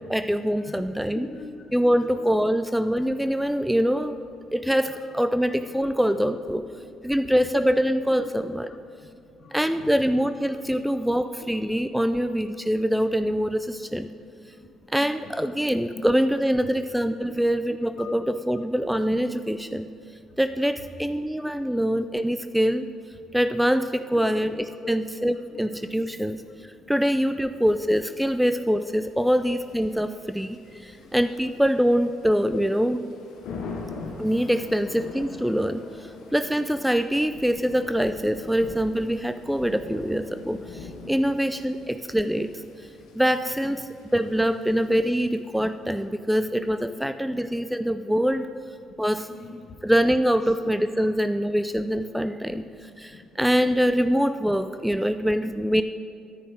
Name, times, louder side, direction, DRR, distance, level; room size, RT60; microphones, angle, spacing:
voice 1, 0.1-1.3 1.7-4.2 4.5-6.6 7.0-8.7 9.5-14.1 14.9-19.9 20.4-22.9 23.3-26.4 26.9-33.0 34.2-42.5 43.2-43.8 44.1-48.5 49.0-49.3 49.8-55.8, equal, 5° right, 10 dB, 0.4 m, -24 dB
voice 2, 0.6-1.7 2.0-2.1 5.9-6.0 7.1-7.3 9.4-10.0 10.9-11.0 11.4-11.5 14.6-15.3 15.9-16.0 17.3-17.4 18.0-18.2 21.5-21.6 24.1-24.4 24.7-24.9 26.9-27.0 31.0-31.1 33.7-33.9 47.7-47.8 49.3-49.8 50.5-50.6 52.8-53.2 53.9-54.0 55.1-55.2, left 4 dB, 50° left, 5 dB, 1.2 m, -42 dB
Thunder / Rain, 29.1-45.7, left 4 dB, 70° left, 1.4 m, -43 dB
9.8 x 9.3 x 4.9 m, 2.5 s
hypercardioid pair, 50°, 0 cm